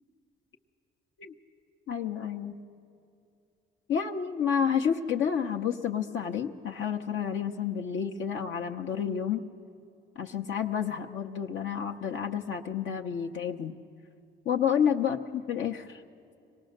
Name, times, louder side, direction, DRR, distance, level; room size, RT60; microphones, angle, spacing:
voice 1, 1.9-2.6 3.9-9.4 10.2-13.8 14.5-16.0, left 8 dB, 75° left, 2 dB, 0.8 m, -30 dB
24.5 x 18.5 x 6.5 m, 2.7 s
cardioid pair, 90°, 20 cm